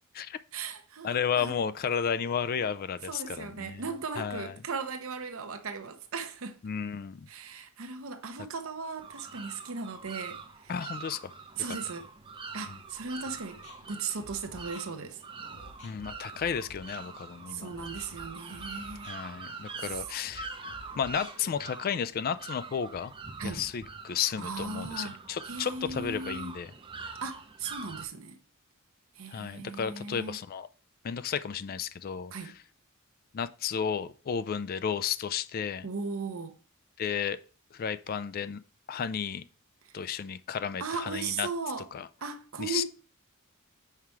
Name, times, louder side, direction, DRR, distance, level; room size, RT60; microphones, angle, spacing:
voice 1, 0.5-1.5 3.1-6.6 7.3-10.7 11.6-12.1 12.5-13.6 13.9-15.2 17.5-19.1 19.8-20.0 23.4-23.6 24.4-25.2 25.4-26.6 27.2-28.4 29.2-30.4 32.3-32.6 35.8-36.6 40.8-41.9 42.2-42.8, right 4 dB, 65° right, 0.8 m, -37 dB
voice 2, 1.0-3.8 4.2-4.5 6.6-7.3 10.7-11.3 12.7-12.8 15.8-17.7 19.1-20.5 21.0-23.1 23.4-26.7 29.3-30.7 31.0-32.5 33.3-35.9 37.0-37.4 37.7-38.6 38.9-39.4 39.9-41.5 41.9-42.1 42.6-42.8, left 7 dB, 40° left, 0.3 m, -33 dB
sound 1, 9.0-28.1, right 4 dB, 25° right, 0.6 m, -44 dB
sound 2, 13.4-21.5, left 1 dB, 85° left, 2.9 m, -51 dB
5.7 x 4.8 x 4.5 m
head